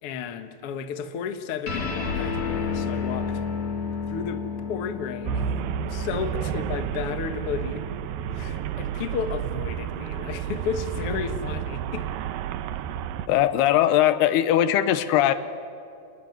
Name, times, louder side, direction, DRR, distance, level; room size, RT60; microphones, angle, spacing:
voice 1, 0.0-3.4 4.1-5.5 5.9-7.9 8.3-12.1, left 7 dB, 60° left, 8 dB, 1.5 m, -33 dB
sound 1, 1.7-8.4, left 5 dB, 45° left, 3.8 m, -31 dB
Traffic noise roadway noise, 5.2-13.3, right 9 dB, 75° right, 2.4 m, -31 dB
voice 2, 13.3-15.3, left 12 dB, 85° left, 12 dB, 3.1 m, -20 dB
29.0 x 20.5 x 9.4 m, 2.6 s
omnidirectional pair, 4.6 m